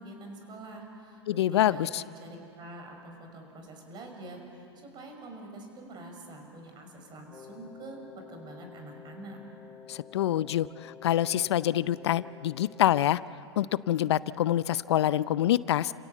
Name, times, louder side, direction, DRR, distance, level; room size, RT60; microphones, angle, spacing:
voice 1, 0.0-8.0 8.3-9.4, right 2 dB, 30° right, 3 dB, 6.1 m, -45 dB
voice 2, 1.3-2.0 9.9-13.2 13.6-15.9, left 12 dB, 70° left, 18 dB, 0.5 m, -26 dB
Wind instrument woodwind instrument, 7.3-13.0, left 7 dB, 20° left, 1.0 m, -50 dB
30.0 x 16.5 x 8.2 m, 2.7 s
hypercardioid pair, 105°, 14 cm